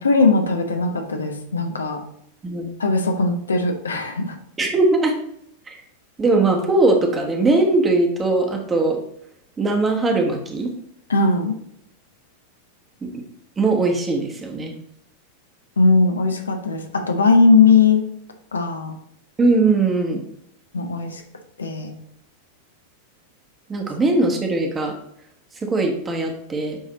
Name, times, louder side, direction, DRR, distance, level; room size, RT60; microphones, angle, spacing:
voice 1, 0.0-2.0 2.8-4.4 11.1-11.5 15.8-18.0 18.5-19.0 20.7-21.2 21.6-21.9, left 4 dB, 75° left, 4 dB, 0.8 m, -18 dB
voice 2, 4.6-5.1 5.7-5.8 6.2-9.0 9.6-10.7 13.0-13.2 13.6-14.7 19.4-20.2 23.7-24.9 25.6-26.8, right 2 dB, 20° right, 2 dB, 1.2 m, -20 dB
8.3 x 3.2 x 3.9 m, 0.72 s
figure-of-eight pair, 90°, 0 cm